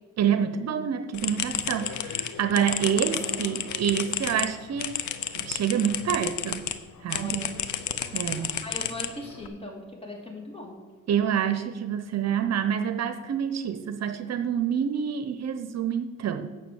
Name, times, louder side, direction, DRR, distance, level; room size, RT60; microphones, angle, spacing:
voice 1, 0.2-4.9 5.3-6.7 7.0-7.5 8.1-8.6 11.1-16.5, right 8 dB, 60° right, 9 dB, 0.8 m, -27 dB
sound 1, 1.1-6.8 7.1-9.5, left 10 dB, 75° left, 0.8 m, -32 dB
voice 2, 2.4-2.7 7.1-7.5 8.6-10.8, left 1 dB, 20° left, -1 dB, 3.0 m, -39 dB
9.3 x 5.9 x 7.1 m, 1.4 s
cardioid pair, 90°, 30 cm